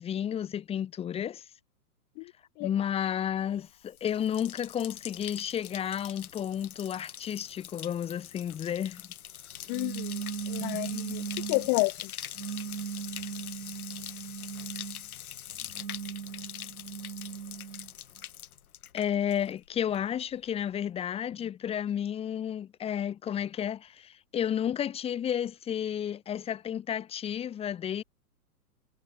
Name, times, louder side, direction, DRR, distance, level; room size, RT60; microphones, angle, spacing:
voice 1, 0.0-1.4 2.6-9.0 18.9-28.0, left 9 dB, 10° left, 1.4 m, -32 dB
Bathtub (filling or washing), 3.6-19.7 19.9-20.5, left 11 dB, 60° left, 6.1 m, -43 dB
voice 2, 9.7-10.1 10.5-12.1, left 40 dB or more, 30° left, 3.6 m, -30 dB
sound 1, 9.7-11.7 12.3-15.0 15.6-17.9, right 7 dB, 85° right, 3.5 m, -38 dB
hypercardioid pair, 145°, 47 cm